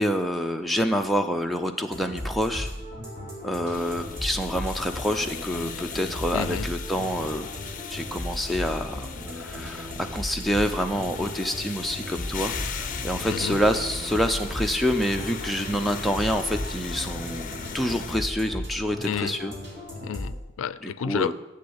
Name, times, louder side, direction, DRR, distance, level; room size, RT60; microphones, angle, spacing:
voice 1, 0.0-2.7 3.4-7.5 7.9-9.1 9.3-19.5 20.8-21.3, equal, ahead, 3 dB, 0.5 m, -27 dB
sound 1, 1.9-20.4, left 1 dB, 60° right, 2.7 m, -36 dB
sound 2, 3.7-18.2, left 5 dB, 40° left, 0.7 m, -37 dB
voice 2, 6.3-6.7 13.2-13.6 19.0-19.3 20.0-21.3, left 8 dB, 85° left, 17 dB, 0.4 m, -30 dB
7.7 x 6.7 x 8.0 m, 1.0 s
head